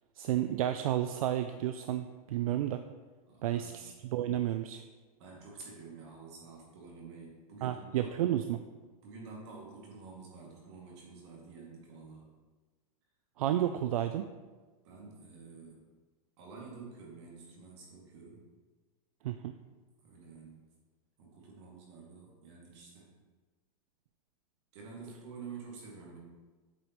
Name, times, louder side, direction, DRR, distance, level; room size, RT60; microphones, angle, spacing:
voice 1, 0.2-2.8 3.4-4.8 7.6-8.6 13.4-14.3 19.2-19.5, right 12 dB, 75° right, 9 dB, 0.4 m, -31 dB
voice 2, 3.3-3.9 5.2-8.1 9.0-12.3 14.8-15.8 16.4-18.4 20.0-20.5 21.2-23.1 24.7-26.2, right 4 dB, 50° right, -3 dB, 2.2 m, -49 dB
8.4 x 5.0 x 3.0 m, 1.3 s
supercardioid pair, 165°, 19 cm